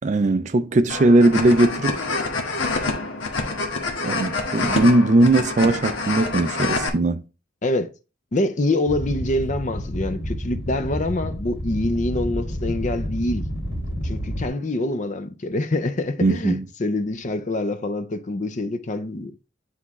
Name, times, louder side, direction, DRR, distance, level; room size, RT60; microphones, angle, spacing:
voice 1, 0.0-2.0 2.8-2.9 4.0-7.2 16.2-16.6, right 2 dB, 35° right, 0.4 m, -19 dB
sound 1, 0.9-6.9, left 3 dB, 80° left, 1.3 m, -26 dB
voice 2, 8.3-13.4 14.0-19.3, left 2 dB, 40° left, 0.5 m, -25 dB
sound 2, 8.9-14.5, equal, 65° left, 2.3 m, -29 dB
9.6 x 3.5 x 3.0 m
head